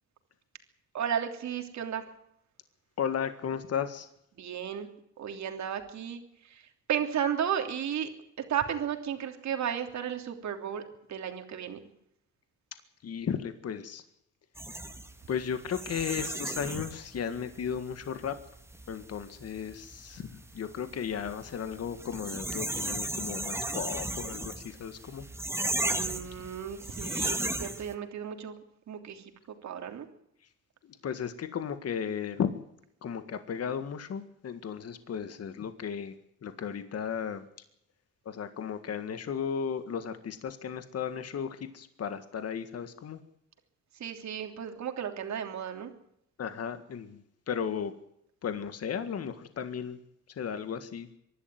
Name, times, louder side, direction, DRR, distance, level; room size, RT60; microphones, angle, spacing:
voice 1, 0.9-2.0 4.4-4.9 5.2-6.6 6.9-8.1 8.4-10.8 11.1-11.8 25.8-28.6 28.9-29.2 29.6-30.1 44.0-45.9, right 8 dB, 65° right, 5 dB, 3.1 m, -34 dB
voice 2, 3.0-4.1 13.0-14.0 15.3-18.4 18.9-25.3 30.8-32.5 33.0-36.1 36.4-37.4 38.3-43.2 46.4-47.9 48.4-50.0 50.4-51.1, left 7 dB, 55° left, 10 dB, 1.8 m, -35 dB
sound 1, 14.6-27.9, right 1 dB, 10° right, 1.9 m, -36 dB
24.5 x 11.5 x 9.4 m, 0.75 s
cardioid pair, 90°, 30 cm